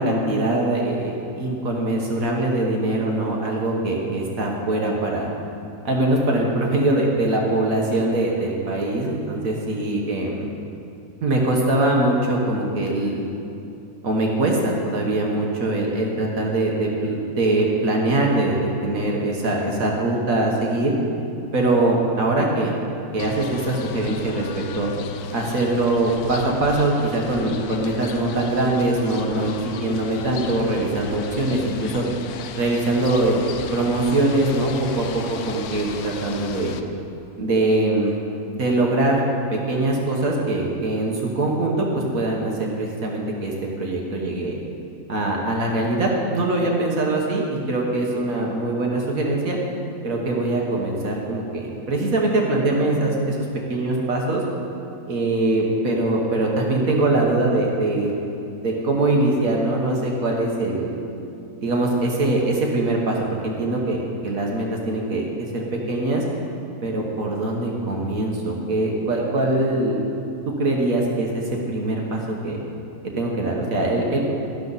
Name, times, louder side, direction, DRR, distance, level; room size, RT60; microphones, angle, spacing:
voice 1, 0.0-5.3 5.8-10.5 11.2-13.2 14.0-20.9 21.5-22.7 23.1-24.9 25.3-29.5 29.8-32.0 32.6-33.5 33.7-36.8 37.4-38.1 38.6-39.2 39.5-44.5 45.1-49.6 50.0-53.4 53.7-54.4 55.1-58.1 58.6-61.0 61.6-66.2 66.8-70.0 70.6-72.6 73.2-74.2, right 2 dB, 65° right, -1 dB, 1.7 m, -22 dB
sound 1, 23.2-36.8, left 6 dB, 75° left, 1.1 m, -35 dB
12.0 x 11.5 x 4.1 m, 2.7 s
omnidirectional pair, 1.6 m